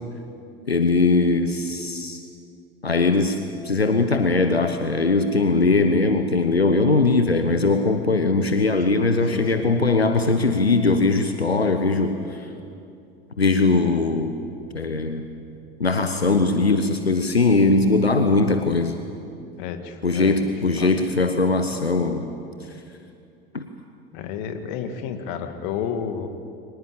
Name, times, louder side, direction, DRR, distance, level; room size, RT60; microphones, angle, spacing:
voice 1, 0.7-2.2 2.8-3.4 3.6-12.5 13.4-14.3 14.7-15.3 15.8-18.9 20.0-22.3 23.5-23.6, left 3 dB, 85° left, 7 dB, 1.1 m, -20 dB
voice 2, 9.3-9.8 19.6-20.5 20.8-20.9 24.1-26.3, left 7 dB, 55° left, 7 dB, 2.1 m, -31 dB
23.5 x 20.0 x 8.6 m, 2.6 s
figure-of-eight pair, 75°, 30 cm